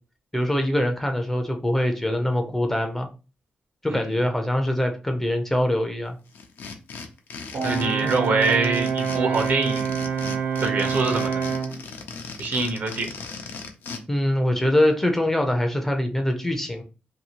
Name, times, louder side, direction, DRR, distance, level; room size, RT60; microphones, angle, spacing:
voice 1, 0.3-3.1 3.8-6.2 8.0-8.1 14.1-16.8, left 1 dB, 10° left, 4 dB, 0.4 m, -23 dB
sound 1, 6.3-14.0, left 5 dB, 80° left, 0.5 m, -37 dB
Brass instrument, 7.5-11.8, right 6 dB, 85° right, 1.1 m, -26 dB
voice 2, 7.6-9.9 10.6-11.4 12.4-13.1, right 3 dB, 60° right, 4 dB, 0.8 m, -24 dB
2.7 x 2.7 x 2.8 m, 0.32 s
wide cardioid pair, 135°, 3 cm